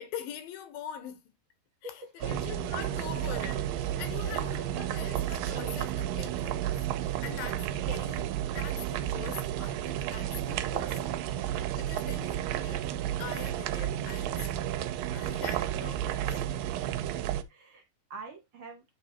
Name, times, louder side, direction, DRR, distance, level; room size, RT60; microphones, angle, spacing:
voice 1, 0.0-1.4 1.8-6.8 7.1-11.2 11.5-12.8 13.2-16.6, left 9 dB, 85° left, 3.0 m, -43 dB
voice 2, 1.8-2.4 4.2-4.6 7.3-7.5 17.1-17.8 18.1-18.8, right 3 dB, 45° right, 2.3 m, -46 dB
sound 1, 2.2-17.4, right 11 dB, 85° right, 2.3 m, -32 dB
9.4 x 3.9 x 4.3 m
omnidirectional pair, 4.0 m